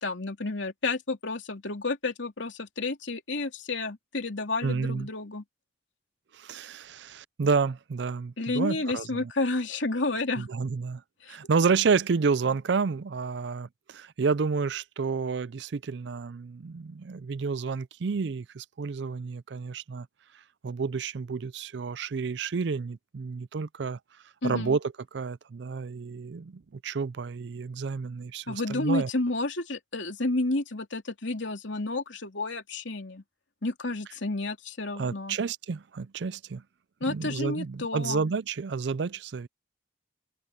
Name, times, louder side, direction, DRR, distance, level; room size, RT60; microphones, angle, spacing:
voice 1, 0.0-5.4 8.4-10.5 11.2-11.4 24.4-24.8 28.5-33.2 33.6-35.4 37.0-38.3, left 2 dB, 75° left, 2.8 m, -31 dB
voice 2, 4.6-5.1 6.3-9.3 10.4-11.0 11.3-20.1 20.6-24.0 24.4-24.8 25.1-29.1 35.0-36.6 37.1-39.5, right 5 dB, 65° right, 0.4 m, -30 dB
head